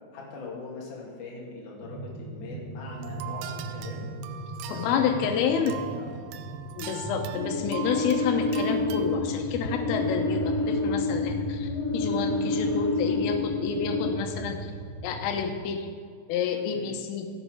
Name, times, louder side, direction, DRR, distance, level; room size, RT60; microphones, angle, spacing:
voice 1, 0.1-4.1 4.7-6.4 13.7-13.9 16.7-16.9, left 3 dB, 50° left, -3 dB, 3.1 m, -42 dB
sound 1, 1.8-15.5, right 2 dB, 55° right, 2.3 m, -38 dB
sound 2, 2.9-9.2, right 12 dB, 85° right, 2.7 m, -41 dB
voice 2, 4.7-5.8 6.8-14.6 15.0-15.9 16.3-17.3, left 7 dB, 90° left, 5 dB, 3.5 m, -29 dB
sound 3, 7.3-14.1, left 3 dB, 70° left, 3.4 m, -29 dB
14.5 x 7.3 x 5.0 m, 2.1 s
omnidirectional pair, 5.7 m